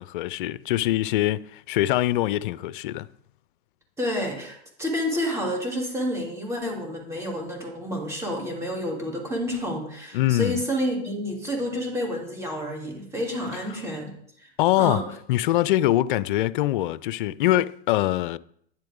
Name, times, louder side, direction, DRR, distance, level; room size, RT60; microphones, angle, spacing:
voice 1, 0.0-3.1 10.1-10.6 14.6-15.0 15.3-18.4, left 15 dB, 55° left, 0.5 m, -23 dB
voice 2, 4.0-14.1 14.4-14.5 14.8-15.0, equal, 10° right, 2.8 m, -29 dB
10.0 x 7.5 x 3.7 m
hypercardioid pair, 115°, 32 cm